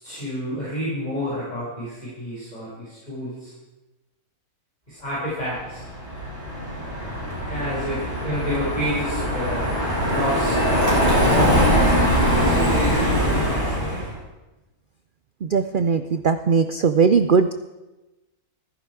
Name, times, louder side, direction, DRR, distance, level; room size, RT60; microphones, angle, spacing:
voice 1, 0.0-3.5 4.9-5.8 7.5-9.7 10.0-10.9 11.3-14.0, equal, 25° left, -9 dB, 5.5 m, -29 dB
Car passing by, 5.6-14.1, equal, 30° right, 5.2 m, -22 dB
voice 2, 15.4-17.5, right 5 dB, 75° right, 10 dB, 0.4 m, -19 dB
15.0 x 14.5 x 4.7 m, 1.1 s
omnidirectional pair, 1.6 m